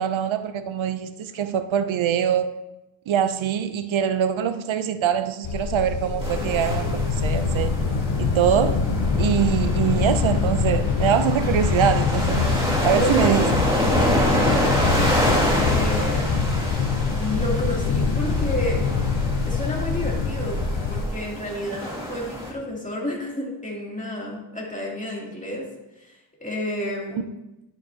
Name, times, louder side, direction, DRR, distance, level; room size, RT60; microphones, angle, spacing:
voice 1, 0.0-2.6 3.1-7.7 8.2-8.8 9.2-12.5 12.8-13.7, right 9 dB, 80° right, 11 dB, 0.6 m, -23 dB
sound 1, 5.4-21.0, left 5 dB, 80° left, 0.8 m, -24 dB
sound 2, 6.2-22.5, equal, 10° right, 2.2 m, -27 dB
voice 2, 12.9-13.4 14.4-16.3 17.1-18.8 19.5-20.6 20.9-25.7 26.0-27.2, left 1 dB, 15° left, -3 dB, 2.7 m, -30 dB
11.0 x 8.0 x 2.8 m, 0.98 s
wide cardioid pair, 85°, 46 cm